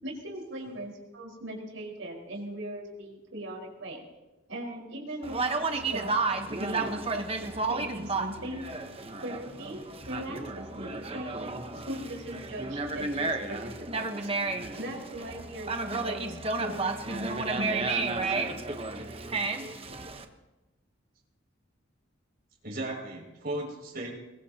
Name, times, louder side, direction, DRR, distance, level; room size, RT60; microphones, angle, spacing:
voice 1, 0.0-4.0 4.5-6.1 6.5-8.7 9.2-11.3 11.7-14.3 14.8-18.3, right 1 dB, 85° right, -1 dB, 4.9 m, -39 dB
Conversation, 5.2-20.2, right 3 dB, 30° right, 1.1 m, -32 dB
voice 2, 22.6-24.1, right 1 dB, 50° right, -1 dB, 6.4 m, -36 dB
22.5 x 21.0 x 2.9 m, 1.1 s
head